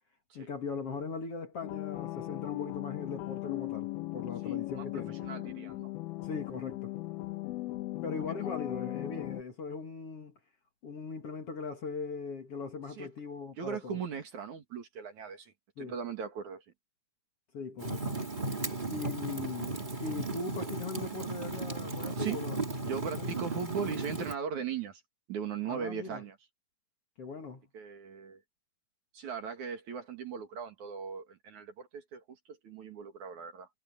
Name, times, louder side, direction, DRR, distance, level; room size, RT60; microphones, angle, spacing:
voice 1, 0.3-5.2 6.2-6.9 8.0-10.3 10.8-14.0 15.8-15.9 17.5-18.2 18.9-22.6 23.2-23.3 25.7-26.2 27.2-27.6, left 4 dB, 45° left, 2.5 m, -39 dB
sound 1, 1.6-9.4, left 18 dB, 85° left, 2.7 m, -38 dB
voice 2, 4.4-5.9 13.0-13.1 13.6-16.6 22.2-22.4 22.8-25.0 25.3-26.4 27.7-28.4 29.1-33.7, right 7 dB, 55° right, 3.3 m, -39 dB
Fire, 17.8-24.3, right 3 dB, 20° right, 1.5 m, -35 dB
omnidirectional pair, 4.3 m